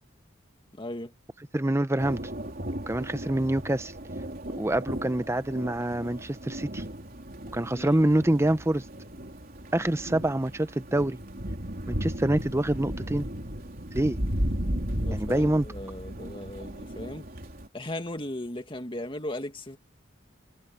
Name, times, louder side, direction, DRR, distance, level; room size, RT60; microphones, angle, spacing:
voice 1, 0.8-1.1 7.7-7.9 14.9-17.3 17.7-19.8, left 1 dB, 25° left, 2.2 m, -37 dB
voice 2, 1.5-2.2 2.9-3.9 4.6-6.8 7.5-8.8 9.7-11.2 11.9-13.3 13.9-14.2 15.1-15.7, right 1 dB, 15° right, 0.8 m, -26 dB
sound 1, 2.0-17.7, equal, 45° right, 3.8 m, -35 dB
head